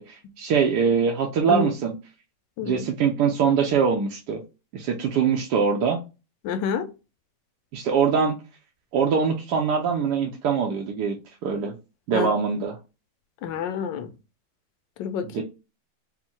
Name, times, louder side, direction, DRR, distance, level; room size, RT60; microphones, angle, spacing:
voice 1, 0.0-1.9 2.6-4.4 4.7-6.0 7.7-8.4 8.9-11.7 12.1-12.8 15.2-15.4, right 6 dB, 75° right, 1.1 m, -23 dB
voice 2, 6.4-6.9 12.1-12.3 13.4-14.1 15.0-15.4, left 6 dB, 85° left, 1.3 m, -28 dB
4.4 x 2.1 x 4.1 m
omnidirectional pair, 1.9 m